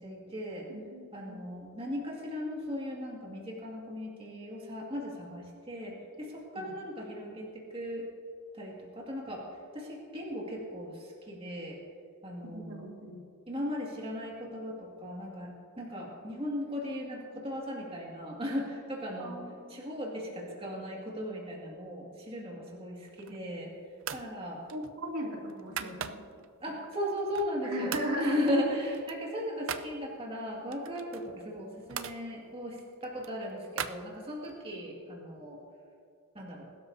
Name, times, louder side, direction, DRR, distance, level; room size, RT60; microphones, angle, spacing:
voice 1, 0.0-0.7 1.1-8.1 8.5-9.4 9.7-11.8 12.2-12.9 13.5-19.3 19.7-23.7 24.1-24.6 26.6-35.6 36.3-36.7, equal, 25° right, -2 dB, 2.1 m, -37 dB
voice 2, 0.7-1.4 6.6-6.7 12.5-13.2 19.2-19.5 23.3-23.6 24.7-26.2 27.6-28.5, right 1 dB, 90° right, -2 dB, 2.7 m, -37 dB
sound 1, 23.0-23.6 24.0-24.3 24.7-26.5 26.9-27.6 27.9-28.1 28.5-29.9 30.7-32.2 32.7-34.6, right 8 dB, 60° right, 0.5 m, -41 dB
21.0 x 12.5 x 2.8 m, 2.4 s
head